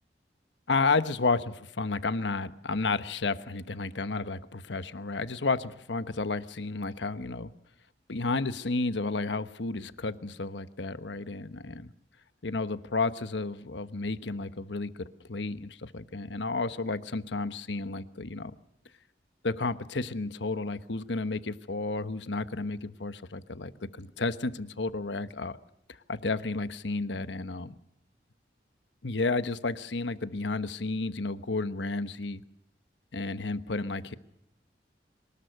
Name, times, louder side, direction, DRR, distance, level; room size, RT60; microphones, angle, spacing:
voice 1, 0.7-7.5 8.1-11.9 12.4-18.5 19.4-25.6 25.9-27.7 29.0-32.4 33.1-34.1, left 3 dB, 85° left, 12 dB, 1.1 m, -32 dB
24.0 x 20.0 x 6.5 m, 0.79 s
head